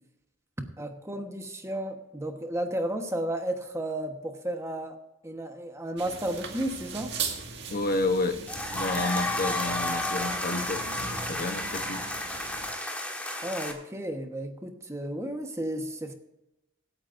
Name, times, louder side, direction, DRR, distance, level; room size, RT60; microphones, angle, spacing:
voice 1, 0.8-5.0 5.2-7.1 13.4-16.1, right 1 dB, 15° right, 5 dB, 1.2 m, -33 dB
sound 1, 6.0-12.7, right 5 dB, 60° right, 1.9 m, -39 dB
voice 2, 7.7-8.4 8.7-12.0, left 2 dB, 45° left, 7 dB, 0.9 m, -30 dB
sound 2, 8.5-13.7, left 1 dB, 5° left, 1.5 m, -32 dB
25.0 x 9.0 x 2.6 m, 0.93 s
head